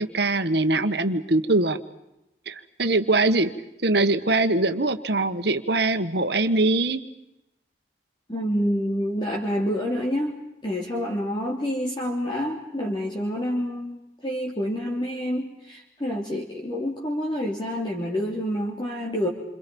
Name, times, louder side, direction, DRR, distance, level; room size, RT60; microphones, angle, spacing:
voice 1, 0.0-1.8 2.5-3.5 3.8-7.0, right 2 dB, 60° right, 9 dB, 1.6 m, -22 dB
voice 2, 8.3-10.3 10.6-19.3, equal, 25° left, -3 dB, 3.2 m, -28 dB
28.5 x 27.0 x 5.5 m, 0.89 s
head